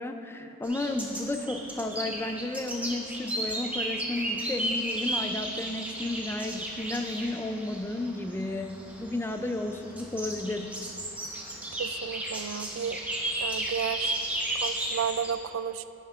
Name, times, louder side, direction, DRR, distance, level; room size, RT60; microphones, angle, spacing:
voice 1, 0.0-10.7, left 2 dB, 10° left, 6 dB, 0.3 m, -33 dB
sound 1, 0.6-15.3, right 1 dB, 5° right, 0.9 m, -34 dB
voice 2, 11.8-13.0 13.4-14.1 14.6-15.8, right 8 dB, 80° right, 12 dB, 0.3 m, -32 dB
11.0 x 10.5 x 2.4 m, 2.8 s
head